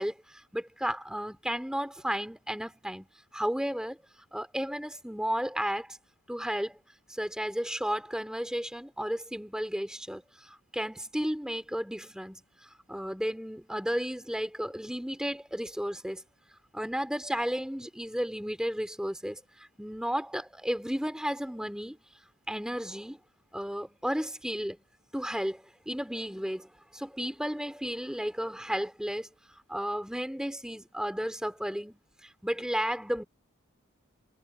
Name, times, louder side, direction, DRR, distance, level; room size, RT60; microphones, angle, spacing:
voice 1, 0.0-3.1 3.3-4.0 4.3-6.0 6.3-6.8 7.1-12.4 12.9-16.2 16.7-22.0 22.5-23.2 23.5-24.8 25.1-29.3 29.7-33.2, equal, 5° right, 3.0 m, -33 dB
head